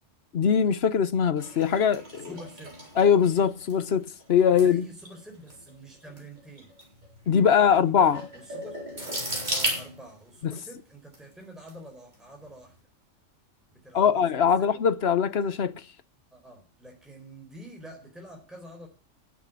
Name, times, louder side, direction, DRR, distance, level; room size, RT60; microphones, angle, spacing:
voice 1, 0.3-2.3 3.0-4.8 7.3-8.2 10.4-10.5 13.9-15.7, left 7 dB, 55° left, 1.1 m, -22 dB
sound 1, 1.4-10.5 11.1-11.7 12.1-12.4, right 1 dB, 35° right, 4.5 m, -36 dB
voice 2, 2.2-2.8 4.6-6.8 7.6-7.9 8.3-9.0 9.5-12.9 13.7-14.7 16.3-18.9, right 1 dB, ahead, 4.1 m, -47 dB
10.5 x 8.5 x 8.3 m
omnidirectional pair, 1.3 m